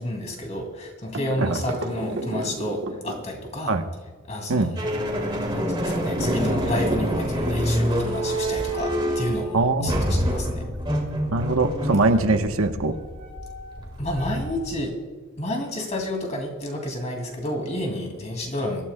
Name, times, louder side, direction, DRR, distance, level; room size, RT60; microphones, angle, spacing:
voice 1, 0.0-3.8 4.3-4.9 5.5-10.7 14.0-15.0 15.4-18.8, left 1 dB, 35° left, 2 dB, 2.5 m, -30 dB
sound 1, 1.1-3.7 5.8-8.1, right 1 dB, 55° right, 1.2 m, -33 dB
sound 2, 4.8-14.9, equal, 20° right, 2.2 m, -27 dB
voice 2, 9.5-9.9 11.3-13.0, right 3 dB, 85° right, 6 dB, 1.0 m, -22 dB
24.5 x 13.5 x 2.3 m, 1.5 s
head